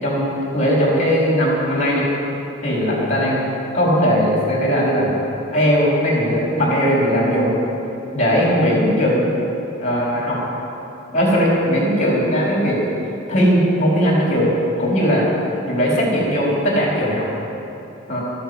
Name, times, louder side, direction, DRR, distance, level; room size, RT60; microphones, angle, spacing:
voice 1, 0.0-2.1 2.6-3.4 3.7-5.1 5.5-7.6 8.1-9.3 9.8-10.4 11.1-12.8 13.3-15.3 15.6-17.3 18.1-18.2, equal, 40° left, -4 dB, 4.4 m, -18 dB
13.5 x 10.5 x 8.1 m, 2.8 s
head